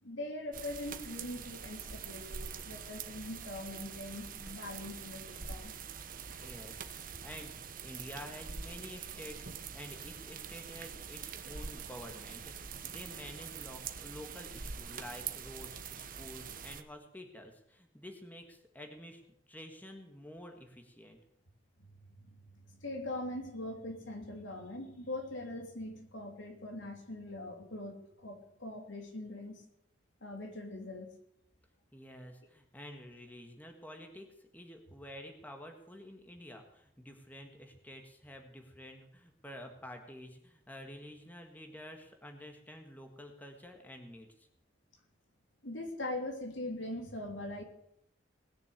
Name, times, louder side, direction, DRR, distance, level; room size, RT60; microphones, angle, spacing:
voice 1, 0.0-5.7 21.8-29.6 30.2-31.2 45.6-47.6, left 1 dB, 85° left, 3 dB, 3.0 m, -42 dB
sound 1, 0.5-16.8, right 6 dB, 45° right, 1.0 m, -44 dB
voice 2, 6.4-19.2 19.5-21.2 31.9-44.5, equal, 10° left, 4 dB, 1.7 m, -49 dB
19.5 x 6.9 x 8.2 m, 0.73 s
head